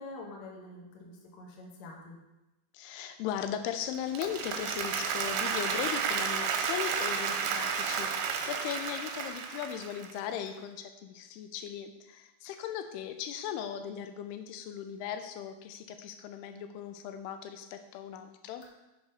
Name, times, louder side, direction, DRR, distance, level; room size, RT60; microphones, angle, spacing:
voice 1, 0.0-2.2 18.6-18.7, left 2 dB, 65° left, -1 dB, 1.8 m, -46 dB
voice 2, 2.7-18.6, left 9 dB, 90° left, 7 dB, 2.6 m, -38 dB
Applause, 3.9-10.2, right 6 dB, 85° right, 2.7 m, -32 dB
6.4 x 4.0 x 5.2 m, 0.98 s
omnidirectional pair, 4.5 m